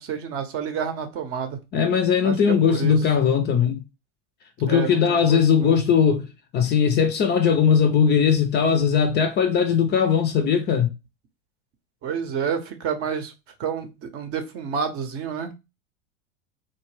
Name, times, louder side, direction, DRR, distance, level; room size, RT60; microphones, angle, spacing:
voice 1, 0.0-1.6 2.2-3.0 4.7-5.8 12.0-13.3 13.6-15.5, right 7 dB, 40° right, 0.7 m, -29 dB
voice 2, 1.7-3.8 4.6-6.2 6.5-10.9, left 7 dB, 30° left, 0.5 m, -19 dB
2.7 x 2.1 x 3.1 m
hypercardioid pair, 95°, 36 cm